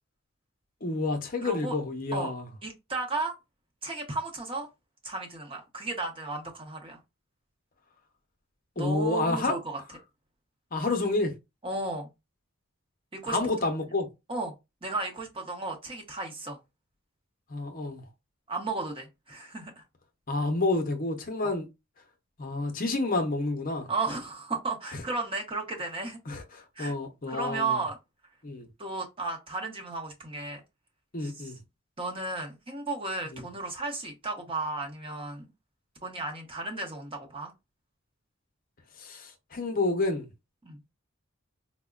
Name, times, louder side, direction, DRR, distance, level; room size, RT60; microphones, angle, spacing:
voice 1, 0.8-2.5 8.8-9.5 10.7-11.3 13.3-14.1 17.5-18.0 20.3-21.7 22.4-23.9 26.3-27.8 28.4-28.7 31.1-31.6 33.3-33.4 39.0-40.3, left 2 dB, 40° left, 0.6 m, -29 dB
voice 2, 1.4-1.7 2.1-2.3 2.6-3.3 3.8-4.7 5.0-7.0 8.8-9.8 11.6-12.1 13.2-13.4 14.3-14.5 14.8-16.6 18.5-19.8 21.4-21.5 23.9-26.2 26.8-26.9 27.3-28.0 28.8-30.6 31.2-31.5 32.0-35.5 36.0-37.5 40.6-40.8, right 3 dB, 25° right, 0.8 m, -34 dB
4.7 x 2.1 x 2.3 m
head